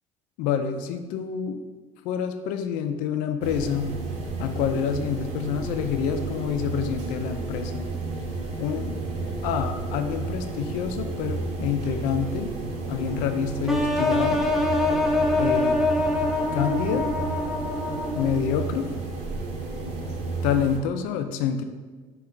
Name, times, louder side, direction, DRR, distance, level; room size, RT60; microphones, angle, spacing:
voice 1, 0.4-1.6 2.0-4.0 4.4-7.9 8.6-9.0 9.4-12.5 12.9-14.4 15.4-15.8 16.5-17.1 18.2-18.9 20.4-21.7, left 7 dB, 85° left, 7 dB, 0.4 m, -27 dB
sound 1, 3.4-20.8, right 3 dB, 55° right, 0.8 m, -32 dB
sound 2, 13.7-18.5, left 2 dB, ahead, 0.4 m, -24 dB
4.5 x 3.0 x 3.7 m, 1.4 s
cardioid pair, 150°, 14 cm